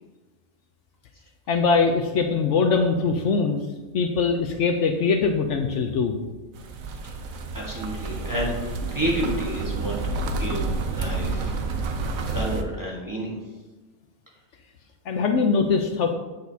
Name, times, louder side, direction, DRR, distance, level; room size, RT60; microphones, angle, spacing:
voice 1, 1.5-3.6 3.9-6.2 15.1-16.1, left 5 dB, 70° left, 4 dB, 0.9 m, -22 dB
sound 1, 6.6-12.6, right 3 dB, 85° right, 1.1 m, -29 dB
voice 2, 7.0-11.6 12.3-13.4, right 1 dB, 15° right, -4 dB, 1.2 m, -30 dB
8.2 x 6.2 x 2.7 m, 1.2 s
omnidirectional pair, 1.4 m